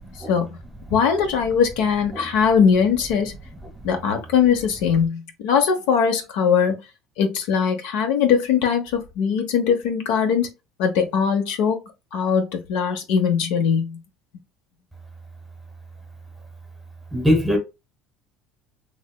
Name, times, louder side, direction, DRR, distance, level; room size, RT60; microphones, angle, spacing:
voice 1, 0.9-3.3 3.8-6.8 7.2-10.5 10.8-11.8 12.1-14.0, left 7 dB, 80° left, 0.7 m, -20 dB
voice 2, 17.1-17.6, equal, 5° right, 1.0 m, -20 dB
3.2 x 2.8 x 2.2 m
cardioid pair, 150°, 0 cm